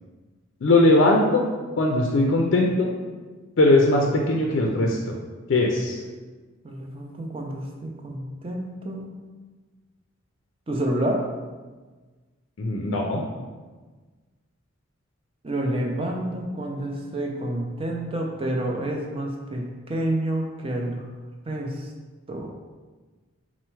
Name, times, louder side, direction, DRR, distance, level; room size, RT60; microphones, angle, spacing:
voice 1, 0.6-1.5 1.8-2.9 3.6-5.0 5.5-6.0 12.6-13.2, left 2 dB, 60° left, 0 dB, 0.4 m, -20 dB
voice 2, 6.6-9.1 10.7-11.2 15.4-21.1 21.5-21.9 22.3-22.5, right 1 dB, 25° right, 0 dB, 0.5 m, -29 dB
4.3 x 2.1 x 4.5 m, 1.3 s
head